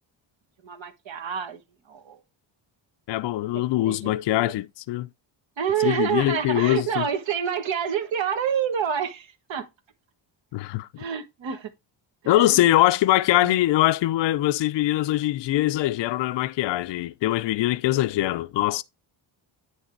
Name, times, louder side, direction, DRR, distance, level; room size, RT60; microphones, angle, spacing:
voice 1, 0.6-1.6 1.9-2.2 3.8-4.5 5.6-9.6 11.0-11.7 12.2-12.6 13.4-13.6, right 8 dB, 70° right, 1.4 m, -28 dB
voice 2, 3.1-5.1 5.8-7.1 10.5-10.9 12.3-18.8, left 15 dB, 65° left, 0.5 m, -22 dB
9.7 x 3.6 x 4.4 m
cardioid pair, 110°, 47 cm